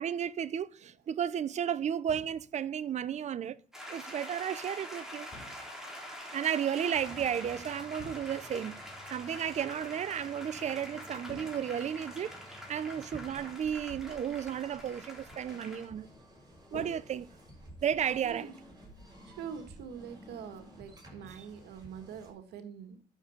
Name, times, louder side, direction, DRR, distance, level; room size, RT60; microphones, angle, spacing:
voice 1, 0.0-3.6 3.9-5.3 6.3-8.8 9.1-12.3 12.7-16.1 16.7-17.3 17.8-18.5, right 9 dB, 45° right, 0.7 m, -33 dB
sound 1, 2.1-2.7 5.3-6.0 8.0-8.7 11.3-12.2 13.9-14.4 16.7-17.8, left 3 dB, 35° left, 5.0 m, -51 dB
sound 2, 3.7-15.9, equal, 5° right, 3.8 m, -46 dB
sound 3, 6.9-22.3, equal, 25° right, 6.5 m, -53 dB
voice 2, 18.2-18.5 19.2-23.0, right 7 dB, 75° right, 1.7 m, -44 dB
11.0 x 6.8 x 7.1 m
cardioid pair, 110°, 17 cm